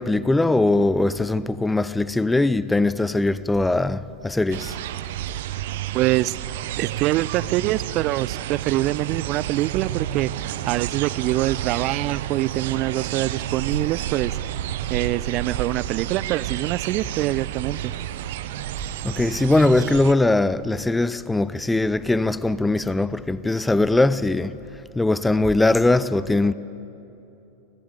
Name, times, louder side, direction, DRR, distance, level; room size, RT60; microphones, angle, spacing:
voice 1, 0.0-4.8 19.0-24.6 24.9-26.5, left 2 dB, 5° left, 0.7 m, -21 dB
sound 1, 4.5-20.1, right 12 dB, 55° right, 0.8 m, -30 dB
voice 2, 5.9-6.4 6.8-14.4 14.9-17.9, right 16 dB, 40° right, 0.5 m, -24 dB
24.0 x 19.0 x 8.2 m
figure-of-eight pair, 90°, 0 cm